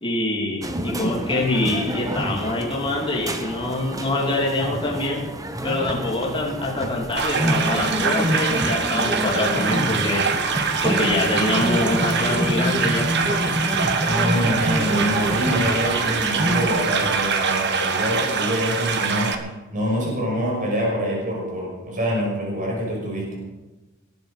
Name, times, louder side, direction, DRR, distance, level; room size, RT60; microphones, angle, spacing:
voice 1, 0.0-5.2 5.6-10.2 10.8-13.1, left 2 dB, 25° left, -3 dB, 2.9 m, -25 dB
sound 1, 0.6-16.7, equal, 15° right, 1.0 m, -27 dB
sound 2, 7.2-19.4, right 5 dB, 55° right, 1.4 m, -24 dB
voice 2, 14.0-19.3 19.7-23.3, equal, 40° right, -3 dB, 5.7 m, -25 dB
19.0 x 10.5 x 5.1 m, 1.1 s
head